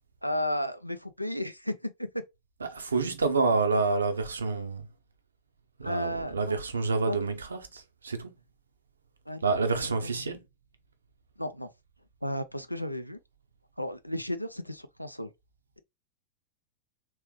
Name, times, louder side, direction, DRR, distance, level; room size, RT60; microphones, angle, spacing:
voice 1, 0.2-2.2 5.8-6.6 7.1-7.2 9.3-10.4 11.4-11.7 12.2-13.2 13.8-15.3, left 1 dB, 90° left, 0.4 m, -34 dB
voice 2, 2.7-4.9 5.8-8.3 9.4-10.4, right 4 dB, 75° right, 0.7 m, -28 dB
3.4 x 3.2 x 3.1 m
figure-of-eight pair, 90°, 0 cm